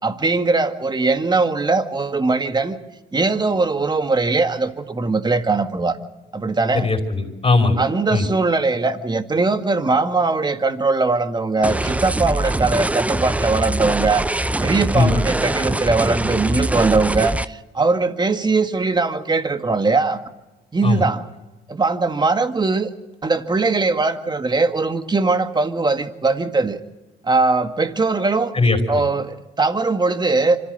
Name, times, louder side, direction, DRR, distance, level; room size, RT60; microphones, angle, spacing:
voice 1, 0.0-2.8 3.1-6.0 6.3-6.9 7.8-14.3 14.6-20.2 20.7-21.2 21.7-22.9 23.2-26.8 27.2-28.5 28.9-30.6, right 3 dB, 25° right, 8 dB, 1.9 m, -20 dB
voice 2, 6.7-7.8 8.1-8.3 14.9-15.1 20.8-21.0 28.5-29.0, left 3 dB, 30° left, 5 dB, 5.4 m, -19 dB
sound 1, 11.6-17.4, right 1 dB, 5° right, 0.6 m, -23 dB
25.5 x 14.5 x 8.2 m, 1.1 s
supercardioid pair, 85°, 19 cm